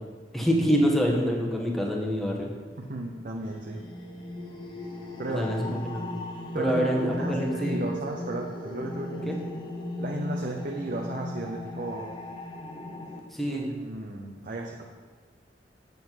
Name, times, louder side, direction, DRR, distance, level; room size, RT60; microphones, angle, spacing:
voice 1, 0.3-2.5 5.3-6.0 6.6-7.9 9.3-9.4 13.3-13.7, equal, ahead, -1 dB, 1.2 m, -26 dB
voice 2, 2.8-3.8 5.2-5.5 6.5-9.3 10.0-12.1 13.5-14.8, right 2 dB, 50° right, 0 dB, 0.8 m, -34 dB
sound 1, 3.0-13.2, left 1 dB, 25° left, 1.0 m, -37 dB
7.9 x 7.4 x 4.6 m, 1.5 s
head